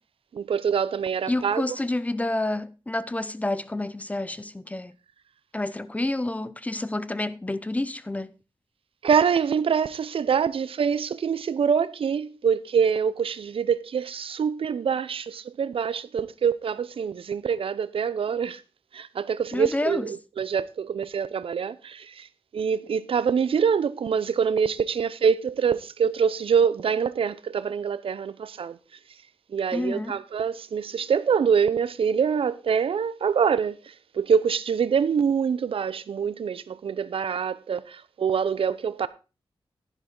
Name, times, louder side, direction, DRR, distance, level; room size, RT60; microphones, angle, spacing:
voice 1, 0.3-1.6 9.0-18.6 18.9-22.3 22.5-28.8 29.5-39.1, right 7 dB, 75° right, 0.7 m, -25 dB
voice 2, 1.3-4.9 5.5-8.3 19.5-20.1 29.7-30.1, left 2 dB, 15° left, 0.6 m, -29 dB
11.0 x 11.0 x 3.8 m
wide cardioid pair, 130°, 10 cm